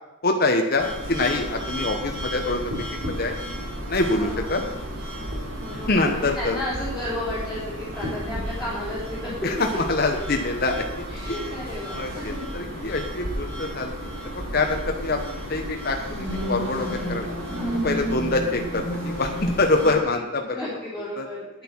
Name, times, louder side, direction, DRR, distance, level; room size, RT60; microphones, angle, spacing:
voice 1, 0.2-3.3 3.9-4.6 5.9-6.6 9.4-10.8 11.3-11.5 11.9-15.2 15.5-17.3 17.8-20.6 21.2-21.3, left 2 dB, 45° left, 3 dB, 0.9 m, -25 dB
sound 1, 0.8-20.0, equal, 75° right, 3.7 m, -32 dB
voice 2, 4.1-4.6 5.6-9.4 11.1-12.4 17.5-17.9 19.8-20.2 20.5-21.5, left 1 dB, ahead, -11 dB, 3.5 m, -33 dB
9.3 x 9.1 x 6.1 m, 0.97 s
head